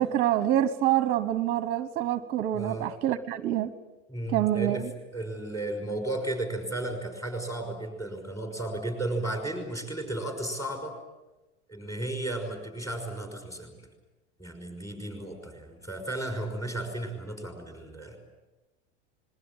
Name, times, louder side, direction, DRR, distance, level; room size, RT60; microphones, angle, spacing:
voice 1, 0.0-3.7 4.3-4.8, right 12 dB, 25° right, 13 dB, 0.9 m, -26 dB
voice 2, 2.5-2.9 4.1-11.0 11.7-13.7 14.4-18.2, right 2 dB, 10° left, 5 dB, 5.7 m, -34 dB
27.5 x 21.5 x 8.9 m, 1.1 s
supercardioid pair, 170°, 36 cm